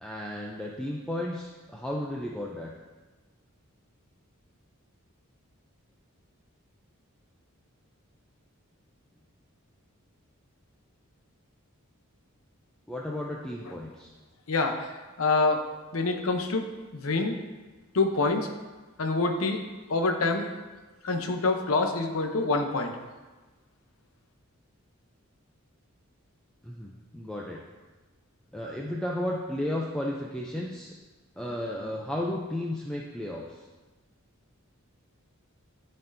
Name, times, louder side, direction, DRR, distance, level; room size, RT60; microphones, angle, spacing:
voice 1, 0.0-2.7 12.9-14.1 26.6-27.6 28.5-30.9 31.4-33.6, left 1 dB, 5° left, -3 dB, 0.5 m, -33 dB
voice 2, 14.5-14.9 15.2-15.6 15.9-16.7 16.9-17.4 17.9-18.5 19.0-19.6 19.9-20.5 21.0-22.9, left 3 dB, 75° left, 4 dB, 0.8 m, -26 dB
13.0 x 4.3 x 2.7 m, 1.2 s
head